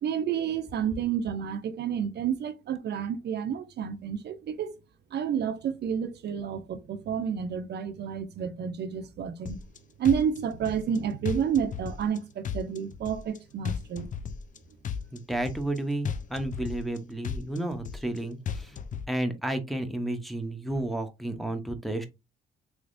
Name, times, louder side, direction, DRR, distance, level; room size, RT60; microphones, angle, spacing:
voice 1, 0.0-4.7 5.1-9.6 10.0-14.1, right 8 dB, 55° right, 0.5 m, -30 dB
sound 1, 9.5-9.8 10.0-11.0 11.3-12.2 12.4-13.4 13.7-14.6 14.8-15.8 16.1-17.0 17.2-18.2 18.5-19.1, left 7 dB, 40° left, 0.5 m, -35 dB
voice 2, 15.1-18.8 19.1-22.1, right 1 dB, ahead, 0.6 m, -32 dB
3.3 x 3.1 x 2.5 m
cardioid pair, 90°, 20 cm